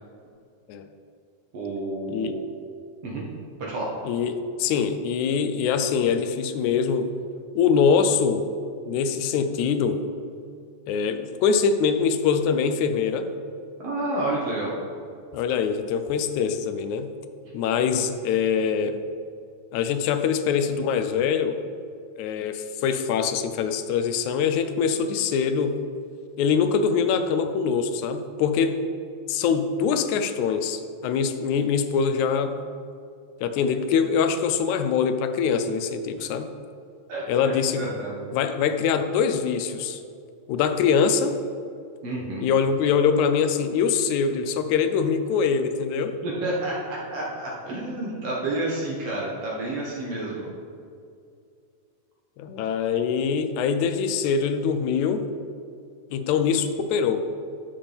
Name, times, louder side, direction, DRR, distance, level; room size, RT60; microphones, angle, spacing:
voice 1, 1.5-2.4 3.0-3.2 3.6-3.9 13.8-14.7 37.1-38.2 42.0-42.5 46.2-50.4, right 2 dB, 60° right, -5 dB, 2.1 m, -30 dB
voice 2, 4.1-7.1 7.6-8.5 8.9-10.0 10.9-13.3 15.3-17.1 17.5-19.0 19.7-21.6 22.2-25.8 26.4-28.8 29.3-32.6 33.4-36.5 37.3-37.9 38.3-40.0 40.5-41.4 42.4-46.2 52.4-55.3 56.1-57.3, left 6 dB, 80° left, 9 dB, 1.9 m, -23 dB
11.0 x 6.9 x 3.5 m, 2.4 s
omnidirectional pair, 3.5 m